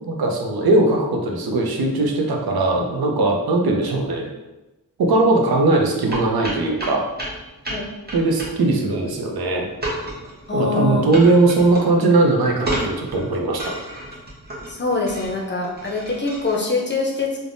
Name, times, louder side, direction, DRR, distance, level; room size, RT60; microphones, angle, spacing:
voice 1, 0.0-4.3 5.0-7.0 8.1-9.7 10.5-13.7, right 2 dB, 75° right, 1 dB, 0.6 m, -19 dB
sound 1, 6.1-16.5, right 1 dB, 25° right, 0.8 m, -32 dB
voice 2, 10.5-11.0 14.7-17.4, left 3 dB, 30° left, -1 dB, 0.5 m, -24 dB
3.3 x 2.1 x 2.5 m, 1.0 s
wide cardioid pair, 85°, 37 cm